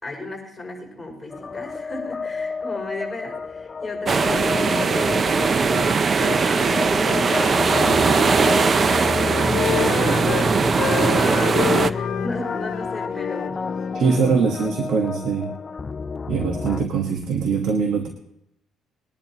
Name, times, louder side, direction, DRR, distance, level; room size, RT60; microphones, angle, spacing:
voice 1, 0.0-5.3 5.6-13.6, left 2 dB, 10° left, -3 dB, 5.4 m, -35 dB
sound 1, 1.3-16.9, left 4 dB, 25° left, 0.3 m, -30 dB
sound 2, 4.1-11.9, right 5 dB, 35° right, 0.5 m, -20 dB
Wind instrument woodwind instrument, 7.6-10.5 10.8-14.1, left 10 dB, 60° left, 0.7 m, -29 dB
voice 2, 13.9-15.5 16.3-18.1, right 5 dB, 70° right, 3 dB, 1.3 m, -22 dB
21.0 x 11.0 x 2.9 m, 0.78 s
cardioid pair, 115°, 0 cm